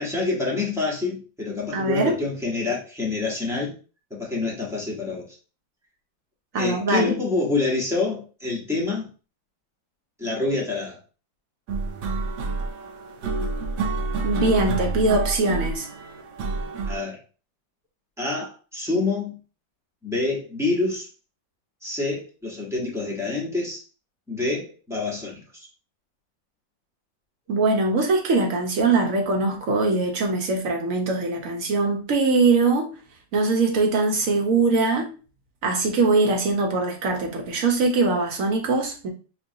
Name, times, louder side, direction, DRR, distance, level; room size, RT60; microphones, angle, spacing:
voice 1, 0.0-3.7 4.1-5.2 6.5-9.1 10.2-11.0 16.9-17.2 18.2-19.4 20.0-21.1 21.8-23.8 24.3-25.7, left 3 dB, ahead, 0.6 m, -27 dB
voice 2, 1.7-2.2 6.5-7.2 14.2-15.9 27.5-32.9 33.3-35.1 35.6-39.1, right 3 dB, 55° right, 1.0 m, -22 dB
sound 1, 11.7-17.0, right 3 dB, 85° right, 1.4 m, -28 dB
5.4 x 2.3 x 2.7 m
omnidirectional pair, 2.1 m